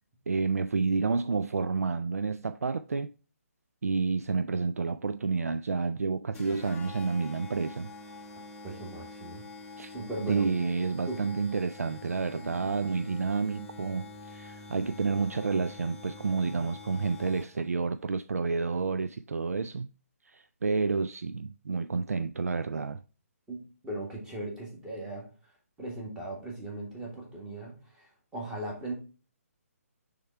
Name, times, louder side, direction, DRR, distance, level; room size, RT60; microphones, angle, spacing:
voice 1, 0.3-3.1 3.8-7.9 9.8-9.9 10.3-19.9 20.3-23.0, right 4 dB, 75° right, 0.3 m, -30 dB
sound 1, 6.3-17.7, left 3 dB, 15° left, 0.7 m, -46 dB
voice 2, 8.6-9.4 9.9-10.5 11.1-11.2 23.5-25.5 25.8-28.9, right 2 dB, 10° right, 1.7 m, -38 dB
6.2 x 3.6 x 4.5 m
figure-of-eight pair, 140°, 8 cm